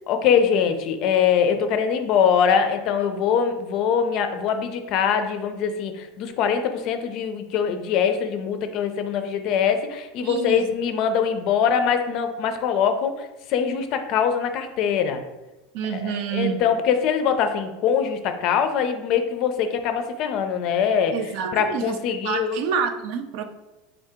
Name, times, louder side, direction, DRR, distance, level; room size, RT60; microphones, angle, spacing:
voice 1, 0.1-13.1 13.5-15.2 15.9-21.2 21.5-22.6, left 7 dB, 50° left, 7 dB, 0.4 m, -23 dB
voice 2, 10.2-10.7 15.7-16.7 21.1-22.0 22.2-23.4, right 7 dB, 60° right, 8 dB, 0.4 m, -27 dB
3.6 x 2.7 x 3.5 m, 1.0 s
supercardioid pair, 140°, 0 cm